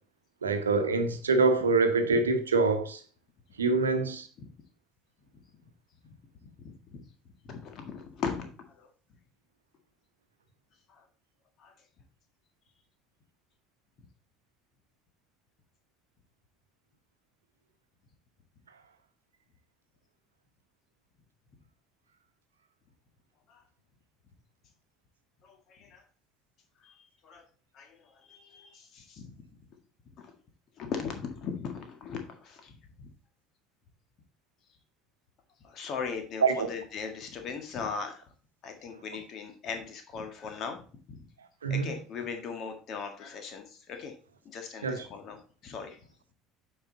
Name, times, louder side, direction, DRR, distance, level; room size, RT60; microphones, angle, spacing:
voice 1, 0.4-3.0 3.6-4.3 36.4-36.7 41.6-41.9 44.8-45.1, right 4 dB, 75° right, 0.9 m, -25 dB
voice 2, 6.4-7.0 7.4-8.9 10.9-11.0 11.6-11.7 23.5-23.6 25.4-26.0 26.8-27.4 27.7-29.4 30.2-30.3 30.8-33.1 35.6-38.3 38.6-40.8 41.1-41.3 41.7-44.1 44.5-46.0, left 6 dB, 45° left, 1.7 m, -39 dB
8.7 x 4.9 x 4.0 m
figure-of-eight pair, 60°, 0 cm